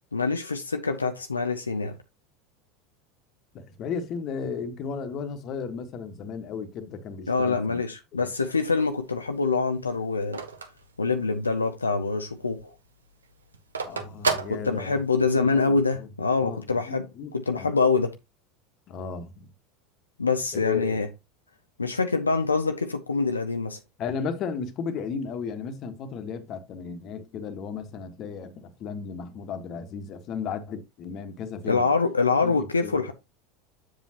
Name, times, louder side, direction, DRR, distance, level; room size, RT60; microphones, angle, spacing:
voice 1, 0.1-2.0 7.3-10.4 11.0-12.7 14.5-18.2 20.2-21.1 21.8-23.8 31.6-33.1, left 4 dB, 90° left, 0.6 m, -25 dB
voice 2, 3.5-7.8 8.2-8.3 13.8-15.0 15.3-16.1 16.4-17.7 18.9-19.5 20.5-21.0 24.0-31.9 32.4-33.1, left 6 dB, 45° left, 1.5 m, -35 dB
Telephone, 8.3-11.7 12.1-12.2 12.4-15.3, right 4 dB, 85° right, 1.1 m, -33 dB
7.4 x 7.1 x 2.9 m
figure-of-eight pair, 80°, 0 cm